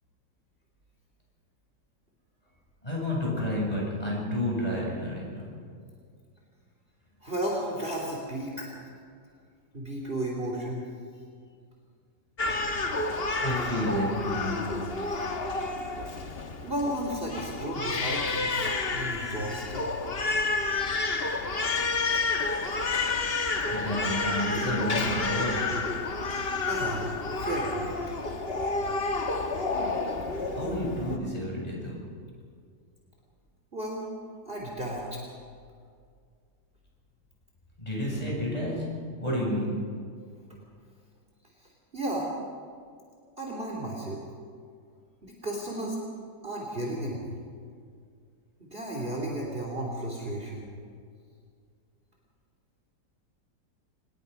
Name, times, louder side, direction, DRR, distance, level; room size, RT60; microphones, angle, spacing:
voice 1, 2.8-5.4 13.4-14.6 23.7-25.6 30.5-32.0 37.8-38.9 39.2-39.8, equal, 20° left, -4 dB, 7.9 m, -30 dB
voice 2, 7.2-8.7 9.7-10.9 16.6-19.8 26.6-27.1 27.4-28.0 33.7-34.1 34.4-35.2 41.9-42.3 43.4-44.2 45.2-46.0 46.4-47.3 48.7-50.7, right 1 dB, 30° right, -1 dB, 3.4 m, -33 dB
Crying sobbing, 12.4-31.2, left 3 dB, 35° left, 1.4 m, -30 dB
26.0 x 20.0 x 5.4 m, 2.2 s
omnidirectional pair, 1.9 m